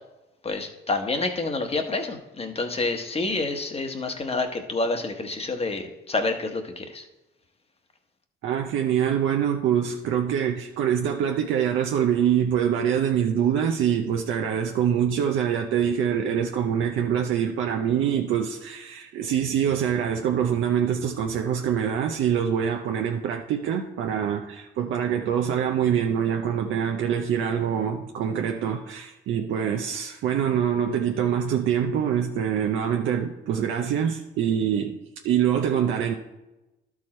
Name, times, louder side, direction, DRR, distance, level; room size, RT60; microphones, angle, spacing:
voice 1, 0.4-7.0, left 3 dB, 30° left, 1.0 m, -28 dB
voice 2, 8.4-35.0 35.2-36.1, right 8 dB, 80° right, 0.6 m, -25 dB
11.5 x 4.8 x 4.3 m
cardioid pair, 90°, 20 cm